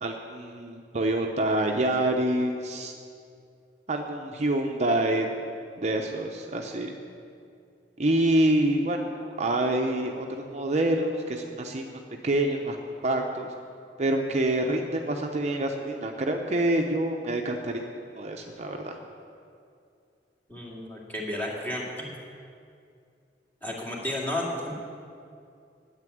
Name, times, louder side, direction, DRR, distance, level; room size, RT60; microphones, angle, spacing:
voice 1, 0.0-2.9 3.9-5.3 5.8-6.9 8.0-13.5 14.0-17.8 18.2-19.0, right 1 dB, 40° right, 2 dB, 0.7 m, -27 dB
voice 2, 20.5-22.1 23.6-24.7, left 1 dB, 10° left, -4 dB, 2.2 m, -32 dB
9.6 x 8.1 x 9.2 m, 2.4 s
head